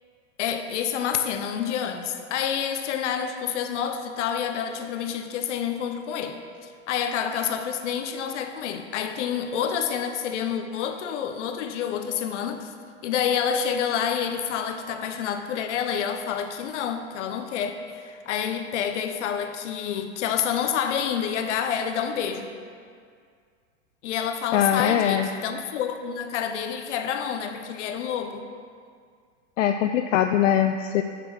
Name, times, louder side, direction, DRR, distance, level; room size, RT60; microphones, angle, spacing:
voice 1, 0.4-12.7 13.0-22.5 24.0-28.5, left 8 dB, 70° left, 7 dB, 0.9 m, -28 dB
voice 2, 24.5-25.3 29.6-31.0, left 10 dB, 85° left, 6 dB, 0.5 m, -22 dB
7.7 x 6.0 x 4.7 m, 2.1 s
hypercardioid pair, 125°, 37 cm